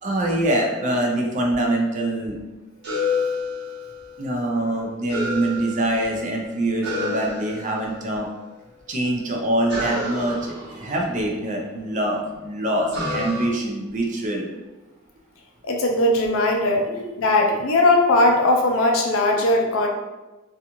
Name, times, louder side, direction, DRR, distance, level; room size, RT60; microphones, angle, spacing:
voice 1, 0.0-2.4 4.2-8.3 8.9-14.4 16.9-17.0, right 1 dB, 35° right, 0 dB, 0.4 m, -24 dB
sound 1, 2.8-4.3 5.1-6.3 6.8-8.1 9.7-11.8 12.9-13.5, left 2 dB, 55° right, 0.8 m, -29 dB
voice 2, 15.6-16.8 17.2-19.9, left 2 dB, 75° left, 1 dB, 0.5 m, -19 dB
2.4 x 2.4 x 2.9 m, 1.1 s
head